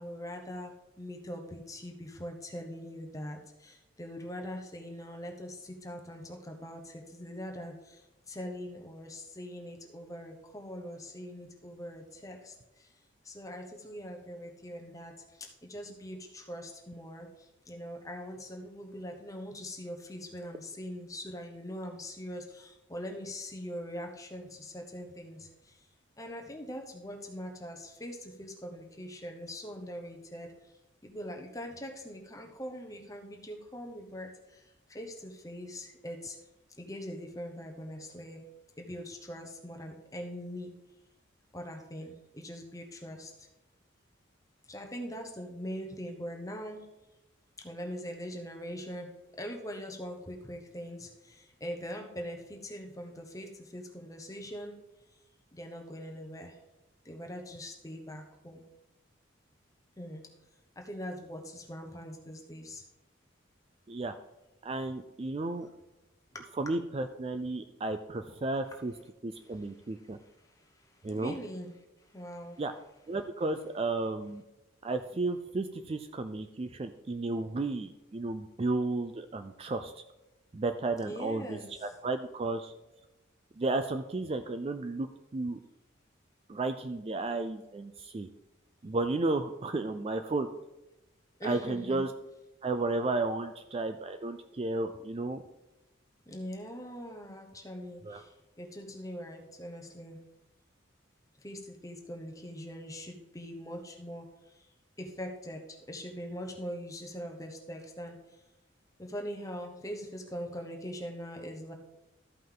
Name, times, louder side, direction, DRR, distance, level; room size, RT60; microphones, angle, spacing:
voice 1, 0.0-12.9 13.2-25.8 26.2-30.5 31.0-34.6 34.9-36.4 36.8-38.4 38.8-40.7 41.5-43.5 44.7-46.8 47.6-49.1 49.4-54.7 55.5-56.6 57.0-58.6 60.0-60.3 60.8-62.8 66.3-66.5 70.4-71.8 72.0-72.6 81.0-81.7 91.4-92.0 96.3-100.2 101.4-104.3 104.6-104.7 105.0-108.2 109.0-111.7, equal, 15° left, 3 dB, 1.1 m, -42 dB
voice 2, 64.6-65.7 66.6-68.9 69.2-70.2 71.0-71.4 72.6-72.7 73.1-74.4 74.8-80.0 80.5-82.7 83.6-85.1 85.3-85.6 86.5-88.3 88.8-90.5 91.4-92.1 92.6-95.4 98.0-98.2, right 2 dB, 30° right, 8 dB, 0.4 m, -33 dB
13.5 x 5.4 x 3.8 m, 0.97 s
head